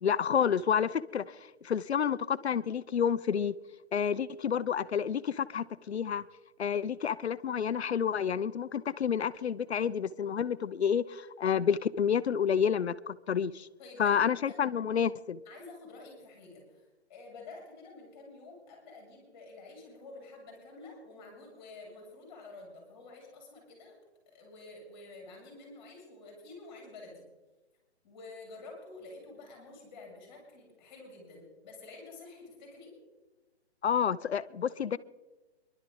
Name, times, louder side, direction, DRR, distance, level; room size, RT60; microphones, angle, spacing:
voice 1, 0.0-1.4 1.6-3.5 3.9-6.2 6.6-13.7 14.0-15.4 33.8-35.0, left 7 dB, 70° left, 0.8 m, -29 dB
voice 2, 13.8-14.6 15.5-23.9 24.3-27.3 28.0-32.9, left 3 dB, 20° left, 6.8 m, -49 dB
25.0 x 12.0 x 3.9 m
hypercardioid pair, 170°, 33 cm